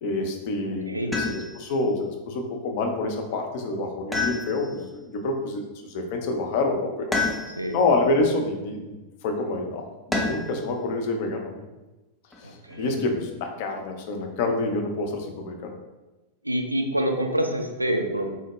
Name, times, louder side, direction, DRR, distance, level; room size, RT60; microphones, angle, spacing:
voice 1, 0.0-7.2 7.7-9.0 9.2-11.6 12.4-15.8, left 2 dB, 50° left, 3 dB, 0.5 m, -27 dB
sound 1, 1.1-1.8 4.1-4.9 7.1-7.8 10.1-10.6 12.3-13.0, left 3 dB, ahead, 0.6 m, -29 dB
voice 2, 12.4-12.9 16.4-18.3, right 1 dB, 85° right, 4 dB, 0.3 m, -26 dB
3.8 x 2.1 x 3.0 m, 1.1 s
figure-of-eight pair, 90°, 0 cm